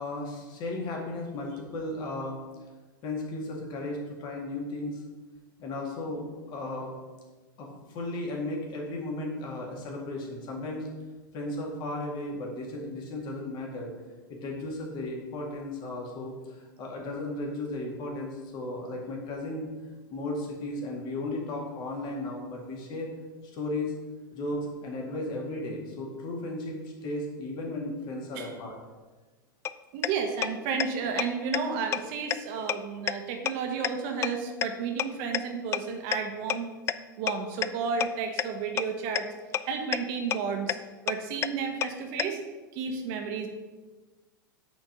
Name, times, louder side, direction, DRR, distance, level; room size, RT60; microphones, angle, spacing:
voice 1, 0.0-2.4 3.0-5.0 5.6-6.9 7.6-7.7 7.9-10.9 11.3-13.9 14.3-19.7 20.1-23.1 23.5-23.9 24.3-28.8, left 2 dB, 40° left, -1 dB, 2.0 m, -35 dB
sound 1, 29.6-29.7 30.0-30.1 30.4-30.5 30.8-30.9 31.2-31.3 31.5-31.6 31.9-32.0 32.3-32.4 32.7-32.8 33.1-33.2 33.5-33.6 33.8-33.9 34.2-34.3 34.6-34.7 35.0-35.1 35.3-35.4 35.7-35.8 36.1-36.2 36.5-36.6 36.9-37.0 37.3-37.4 37.6-37.7 38.0-38.1 38.4-38.5 38.8-38.9 39.2-39.3 39.5-39.6 39.9-40.0 40.3-40.4 40.7-40.8 41.1-41.2 41.4-41.5 41.8-41.9 42.2-42.3, left 10 dB, 25° left, 0.3 m, -26 dB
voice 2, 29.9-36.7 37.2-39.3 39.6-40.8 41.0-42.4 42.7-43.5, right 5 dB, 50° right, 4 dB, 1.5 m, -32 dB
9.1 x 4.4 x 5.4 m, 1.3 s
figure-of-eight pair, 95°, 11 cm